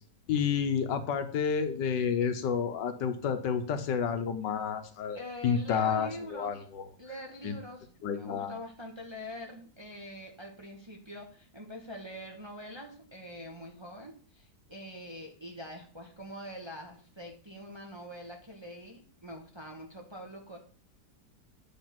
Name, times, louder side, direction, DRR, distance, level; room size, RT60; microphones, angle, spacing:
voice 1, 0.3-5.2 5.4-6.8 7.4-7.5 8.0-8.6, left 7 dB, 85° left, 8 dB, 1.6 m, -30 dB
voice 2, 5.1-6.6 7.0-7.9 8.1-20.6, equal, 20° right, 1 dB, 0.8 m, -44 dB
8.5 x 3.5 x 5.8 m, 0.43 s
omnidirectional pair, 1.8 m